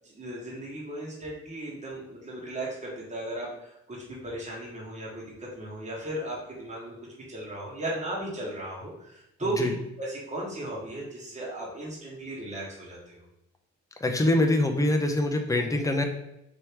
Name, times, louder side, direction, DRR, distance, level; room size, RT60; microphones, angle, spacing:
voice 1, 0.0-13.2, right 1 dB, 25° right, -4 dB, 1.3 m, -36 dB
voice 2, 14.0-16.0, left 1 dB, 10° left, 4 dB, 0.6 m, -24 dB
3.5 x 3.0 x 4.4 m, 0.83 s
cardioid pair, 90°, 30 cm